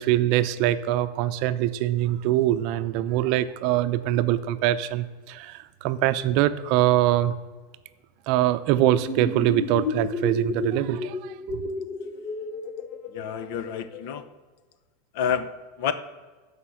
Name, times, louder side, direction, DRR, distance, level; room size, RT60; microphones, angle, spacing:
voice 1, 0.0-7.3 8.3-11.7, right 13 dB, 50° right, 12 dB, 0.6 m, -23 dB
sound 1, 8.9-14.2, left 4 dB, 25° left, 0.9 m, -32 dB
voice 2, 13.1-14.3 15.1-15.9, left 7 dB, 60° left, 12 dB, 0.8 m, -29 dB
13.0 x 5.1 x 5.8 m, 1.3 s
supercardioid pair, 145°, 0 cm